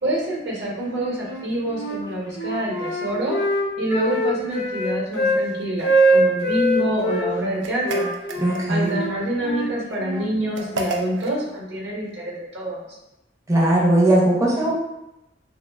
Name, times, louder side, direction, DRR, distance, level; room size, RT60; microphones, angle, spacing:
voice 1, 0.0-3.4 3.8-8.1 8.7-13.0, right 1 dB, 70° right, -4 dB, 0.7 m, -26 dB
Wind instrument woodwind instrument, 1.2-2.0 2.3-5.4 5.8-7.3 7.8-10.3, right 1 dB, 80° left, 0.5 m, -23 dB
sound 1, 7.6-8.9 10.5-11.4, right 2 dB, 85° right, 0.3 m, -31 dB
voice 2, 8.4-9.0 13.5-14.7, right 1 dB, 15° right, -4 dB, 0.5 m, -18 dB
3.0 x 2.0 x 2.2 m, 0.90 s
head